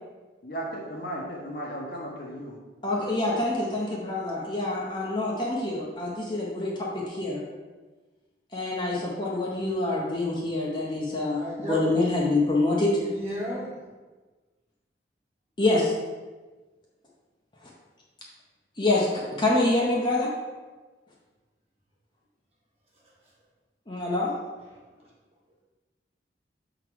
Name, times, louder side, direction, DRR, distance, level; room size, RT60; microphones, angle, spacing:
voice 1, 0.4-2.5, right 1 dB, 55° left, -2 dB, 1.2 m, -35 dB
voice 2, 2.8-7.4 8.5-12.9 15.6-15.9 18.8-20.3 23.9-24.3, left 2 dB, 25° left, -4 dB, 0.9 m, -26 dB
voice 3, 11.3-12.0 13.0-13.9 24.7-24.8, right 1 dB, 35° right, -5 dB, 1.7 m, -34 dB
6.5 x 3.9 x 4.7 m, 1.3 s
head